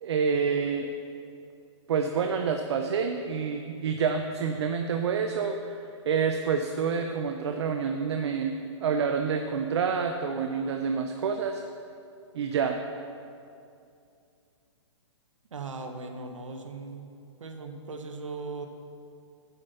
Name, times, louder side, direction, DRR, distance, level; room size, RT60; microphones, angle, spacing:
voice 1, 0.0-0.9 1.9-8.5 8.8-11.6 12.3-12.8, right 6 dB, 60° right, 5 dB, 0.6 m, -28 dB
voice 2, 15.5-17.1 17.4-18.7, right 3 dB, 85° right, 5 dB, 1.0 m, -38 dB
9.6 x 5.3 x 6.8 m, 2.5 s
hypercardioid pair, 140°, 16 cm